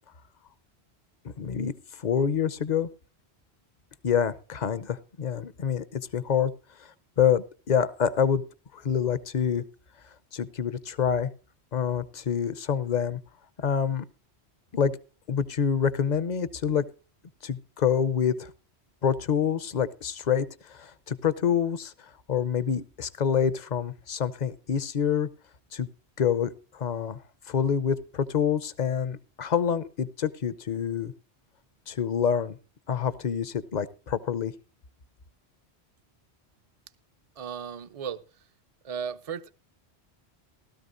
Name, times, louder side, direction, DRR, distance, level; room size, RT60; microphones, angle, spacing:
voice 1, 1.4-1.7 2.0-2.9 4.0-6.5 7.2-8.4 8.7-9.6 10.3-11.3 11.7-13.2 13.6-14.0 14.7-15.0 15.3-16.8 17.4-18.5 19.0-21.9 22.3-25.3 25.7-25.9 26.2-27.2 27.5-31.1 31.9-32.6 32.9-34.5, left 7 dB, 45° left, 16 dB, 0.7 m, -27 dB
voice 2, 37.4-38.2 38.8-39.5, right 7 dB, 40° right, 13 dB, 0.6 m, -35 dB
17.0 x 13.0 x 2.6 m, 0.34 s
omnidirectional pair, 1.1 m